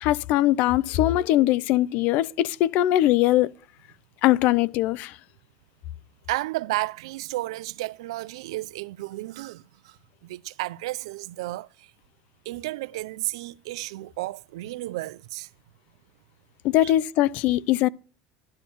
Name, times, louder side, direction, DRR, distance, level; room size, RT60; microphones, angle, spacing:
voice 1, 0.0-3.5 4.2-5.2 16.6-17.9, left 14 dB, 65° left, 0.5 m, -21 dB
voice 2, 6.3-11.9 12.5-15.5 16.8-16.9, right 18 dB, 85° right, 0.4 m, -33 dB
11.5 x 4.3 x 7.0 m
supercardioid pair, 100°, 3 cm